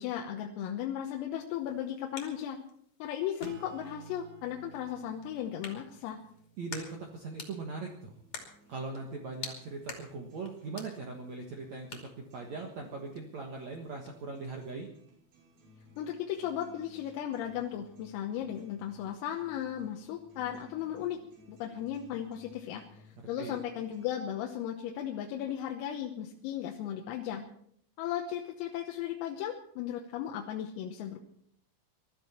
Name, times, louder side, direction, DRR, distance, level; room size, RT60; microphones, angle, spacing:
voice 1, 0.0-2.6 3.0-6.2 16.0-21.2 21.5-27.5 28.0-31.2, left 10 dB, 85° left, 1 dB, 3.8 m, -36 dB
sound 1, 1.5-14.7, left 5 dB, 40° left, 2.9 m, -50 dB
Acoustic guitar / Strum, 3.4-8.4, right 7 dB, 70° right, 3.5 m, -54 dB
voice 2, 6.6-8.1 8.7-14.9 23.4-23.6, right 3 dB, 90° right, 1 dB, 1.5 m, -40 dB
sound 2, 8.1-24.1, left 1 dB, 55° right, 7.7 m, -60 dB
22.0 x 13.0 x 4.5 m, 0.67 s
omnidirectional pair, 5.9 m